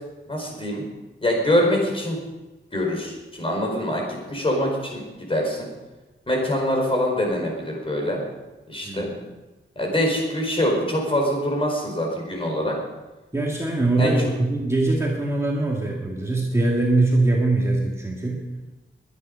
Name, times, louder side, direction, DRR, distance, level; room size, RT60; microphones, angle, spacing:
voice 1, 0.3-0.8 1.2-2.2 2.7-5.7 6.3-8.2 8.7-9.1 9.7-12.8 14.0-14.3, left 1 dB, 25° left, 0 dB, 4.8 m, -24 dB
voice 2, 8.8-9.2 13.3-18.4, right 2 dB, 15° right, -3 dB, 2.1 m, -22 dB
22.5 x 10.0 x 5.4 m, 1.1 s
wide cardioid pair, 150°, 21 cm